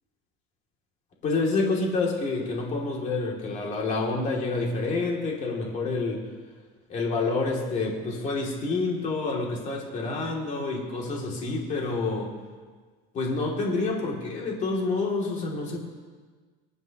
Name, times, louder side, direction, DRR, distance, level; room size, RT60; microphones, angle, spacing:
voice 1, 1.2-6.2 6.9-12.3 13.1-15.8, left 3 dB, 35° left, -1 dB, 2.6 m, -28 dB
23.0 x 9.3 x 3.0 m, 1.4 s
cardioid pair, 155°, 20 cm